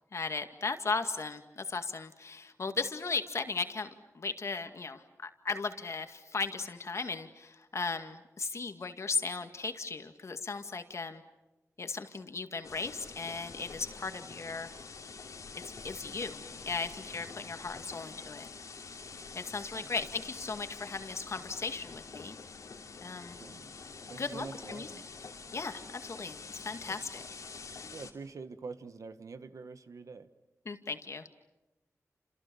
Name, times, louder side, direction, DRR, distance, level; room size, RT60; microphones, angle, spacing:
voice 1, 0.1-11.2 11.8-14.7 15.6-18.5 19.3-22.4 23.0-23.4 24.2-24.9 25.5-27.2 30.7-31.3, left 4 dB, 60° left, 7 dB, 2.1 m, -37 dB
sound 1, 12.6-28.1, left 4 dB, 85° left, 3.0 m, -46 dB
voice 2, 23.4-23.7 24.1-25.1 26.8-27.0 27.9-30.3, right 4 dB, 75° right, 10 dB, 1.5 m, -45 dB
30.0 x 28.0 x 7.1 m, 1.0 s
wide cardioid pair, 105°, 6 cm